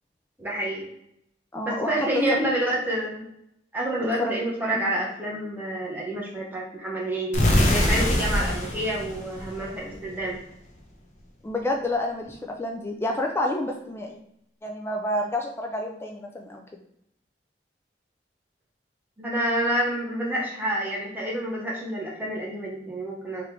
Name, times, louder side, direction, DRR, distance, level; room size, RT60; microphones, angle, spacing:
voice 1, 0.4-0.9 1.6-3.2 3.7-10.4 19.2-23.5, right 1 dB, 10° right, -4 dB, 1.0 m, -28 dB
voice 2, 1.5-2.4 4.2-4.3 4.7-4.9 11.4-14.2 14.6-16.8, left 1 dB, 15° left, 2 dB, 0.3 m, -29 dB
sound 1, 7.3-10.2, left 1 dB, 40° left, 0.8 m, -23 dB
3.6 x 3.2 x 3.3 m, 0.77 s
head